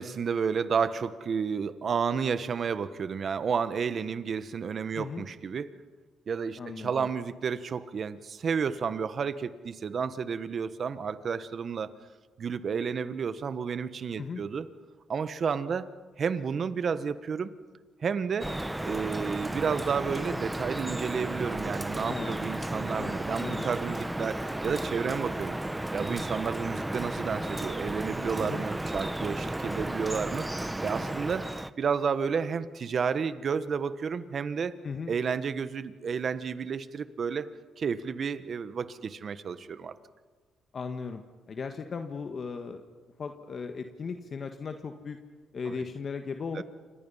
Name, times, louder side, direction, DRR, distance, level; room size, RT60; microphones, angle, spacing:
voice 1, 0.0-5.7 6.3-11.9 12.4-14.7 15.1-15.9 16.2-17.5 18.0-18.5 18.8-25.6 25.9-31.5 31.8-34.8 35.1-39.9 45.6-45.7 46.5-46.6, right 6 dB, 50° right, 13 dB, 1.2 m, -31 dB
voice 2, 4.9-5.2 6.6-7.1 14.2-14.4 22.1-22.3 23.0-23.1 23.4-23.7 28.4-28.6 34.8-35.1 40.7-41.2 41.5-42.8 43.2-45.2 45.5-46.6, left 5 dB, 45° left, 6 dB, 1.5 m, -37 dB
Drip, 18.4-31.7, right 1 dB, 10° right, 0.9 m, -33 dB
28.5 x 25.5 x 5.7 m, 1.4 s
cardioid pair, 90°, 0 cm